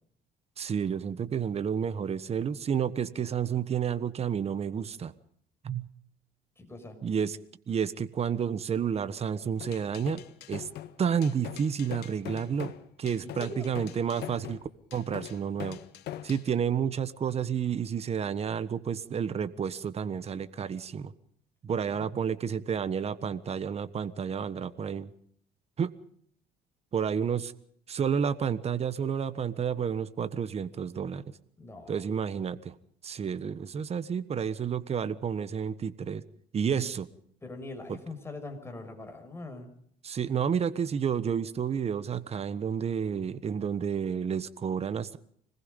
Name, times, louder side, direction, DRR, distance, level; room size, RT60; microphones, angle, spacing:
voice 1, 0.6-5.1 5.6-5.9 7.0-7.4 7.7-10.2 10.5-10.7 11.0-12.7 13.0-14.6 14.9-15.8 16.2-21.1 21.6-25.1 25.8-25.9 26.9-27.5 27.9-31.2 31.9-32.7 33.0-36.2 36.5-37.1 37.9-38.0 40.0-45.2, right 7 dB, 40° right, 14 dB, 1.3 m, -30 dB
voice 2, 6.6-7.0 13.2-13.7 21.9-22.1 31.6-32.0 36.7-36.9 37.4-39.7, left 2 dB, 15° left, 4 dB, 6.2 m, -42 dB
sound 1, 9.6-16.5, left 12 dB, 75° left, 1.5 m, -42 dB
26.0 x 20.0 x 5.4 m, 0.64 s
cardioid pair, 110°, 17 cm